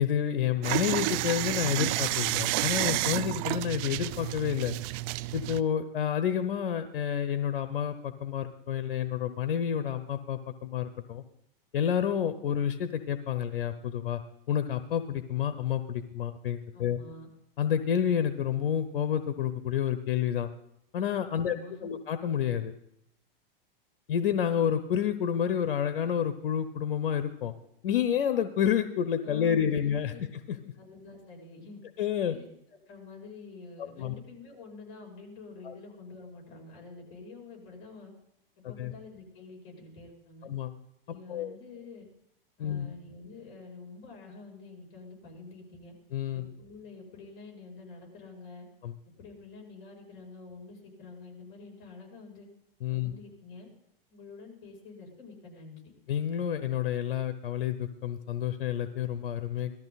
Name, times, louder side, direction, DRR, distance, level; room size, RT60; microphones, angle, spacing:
voice 1, 0.0-4.7 5.3-11.2 11.7-14.2 14.5-17.0 17.6-20.5 20.9-22.7 24.1-27.5 27.8-30.1 32.0-32.4 33.8-34.1 35.6-35.7 38.6-38.9 40.5-40.7 41.1-41.5 42.6-42.9 46.1-46.5 48.8-48.9 52.8-53.1 56.1-59.7, left 9 dB, 80° left, 11 dB, 0.9 m, -29 dB
sound 1, 0.6-5.6, right 18 dB, 40° right, 0.4 m, -30 dB
voice 2, 16.7-17.3 21.3-22.0 29.2-30.2 30.5-31.8 32.3-32.5 32.9-38.1 38.6-40.5 41.1-42.1 42.6-45.9 46.3-48.6 49.2-52.5 52.9-53.7 54.1-55.8, left 3 dB, 45° left, 0 dB, 6.2 m, -48 dB
18.5 x 13.5 x 4.1 m, 0.77 s
hypercardioid pair, 135°, 29 cm